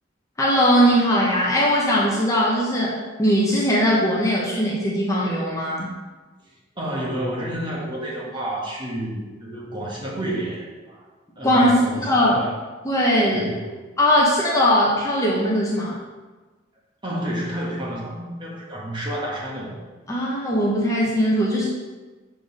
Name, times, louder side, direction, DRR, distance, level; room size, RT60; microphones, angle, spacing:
voice 1, 0.4-5.9 11.4-12.3 12.8-13.5 14.0-16.0 20.1-21.7, equal, 15° left, -5 dB, 1.1 m, -20 dB
voice 2, 6.7-11.0 11.4-12.6 13.3-13.6 17.0-19.8, right 1 dB, 25° right, -4 dB, 1.5 m, -30 dB
6.5 x 4.6 x 5.3 m, 1.3 s
head